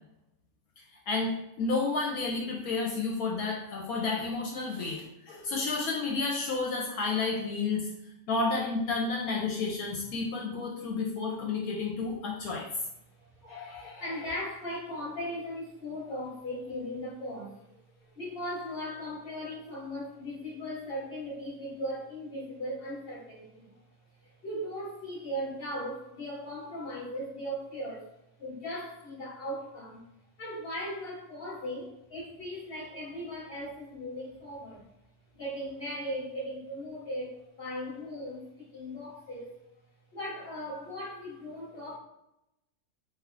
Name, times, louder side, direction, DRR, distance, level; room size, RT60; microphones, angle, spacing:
voice 1, 1.1-7.9 8.3-12.7 13.4-14.0, left 3 dB, 75° left, -2 dB, 1.0 m, -31 dB
voice 2, 13.1-23.8 24.2-28.1 28.4-30.0 30.4-34.9 35.3-39.5 40.1-42.0, equal, 45° left, -7 dB, 0.9 m, -38 dB
3.3 x 3.0 x 2.4 m, 0.85 s
omnidirectional pair, 1.7 m